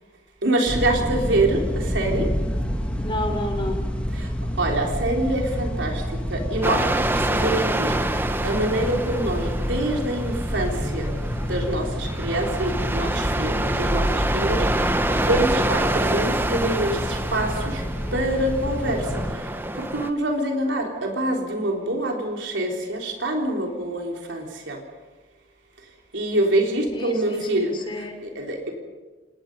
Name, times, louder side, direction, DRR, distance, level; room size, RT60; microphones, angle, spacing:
voice 1, 0.4-2.3 4.2-4.3 4.6-6.0 6.3-7.0 7.3-7.9 8.4-11.1 11.4-14.0 14.3-17.8 18.1-19.0 19.7-24.8 26.1-27.7 28.2-28.7, right 1 dB, 75° right, 1 dB, 3.9 m, -25 dB
sound 1, 0.7-19.3, equal, 5° left, 2.1 m, -28 dB
voice 2, 3.0-3.8 26.9-28.2, left 1 dB, 25° left, 5 dB, 3.2 m, -31 dB
sound 2, 6.6-20.1, right 1 dB, 10° right, 1.0 m, -27 dB
27.5 x 20.5 x 5.5 m, 1.2 s
head